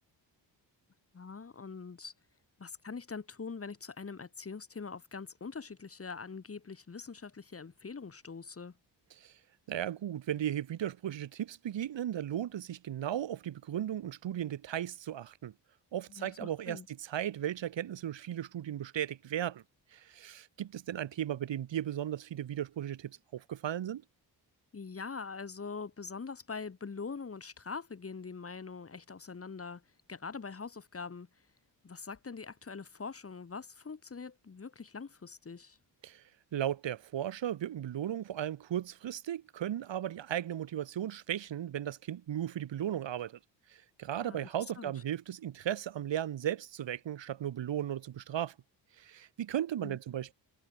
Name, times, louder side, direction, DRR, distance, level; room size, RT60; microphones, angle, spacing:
voice 1, 1.1-2.1 2.6-8.7 16.1-16.9 24.7-29.8 30.1-31.3 31.8-35.8 44.2-44.5 44.8-45.0 49.8-50.0, left 5 dB, 30° left, 1.9 m, -43 dB
voice 2, 9.7-15.5 15.9-19.6 19.9-24.0 36.0-36.2 36.5-43.4 44.0-48.5 49.0-50.3, right 11 dB, 75° right, 3.3 m, -36 dB
cardioid pair, 80°, 44 cm